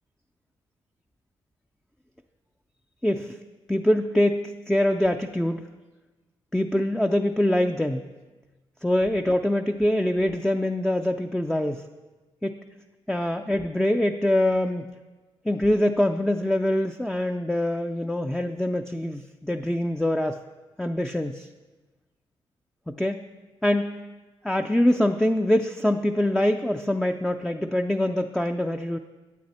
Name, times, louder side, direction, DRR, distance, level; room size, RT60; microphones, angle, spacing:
voice 1, 3.0-3.4 3.7-5.7 6.5-8.0 8.8-11.8 12.4-12.5 13.1-14.9 15.5-20.4 20.8-21.5 22.9-23.2 23.6-24.0 24.4-29.0, left 1 dB, 5° left, 5 dB, 0.4 m, -24 dB
11.5 x 8.5 x 4.3 m, 1.2 s
cardioid pair, 70°, 11 cm